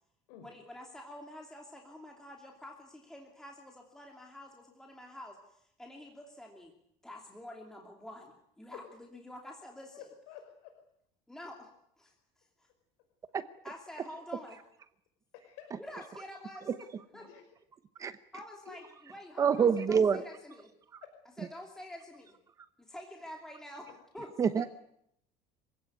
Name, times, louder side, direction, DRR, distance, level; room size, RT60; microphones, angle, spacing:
voice 1, 0.4-6.7 7.0-10.0 11.3-12.7 13.6-14.6 15.8-16.7 17.1-17.3 18.3-20.6 21.4-22.3 22.8-23.9 24.1-24.3, left 1 dB, 5° left, 0 dB, 2.9 m, -48 dB
voice 2, 9.9-10.7 15.3-15.7 17.1-17.4 18.7-18.8 21.0-21.1 22.9-23.0, left 10 dB, 75° left, 4 dB, 5.5 m, -50 dB
voice 3, 19.4-20.2 20.9-21.0 24.4-24.7, right 6 dB, 20° right, 12 dB, 0.9 m, -26 dB
26.5 x 17.0 x 9.6 m, 0.74 s
cardioid pair, 165°, 14 cm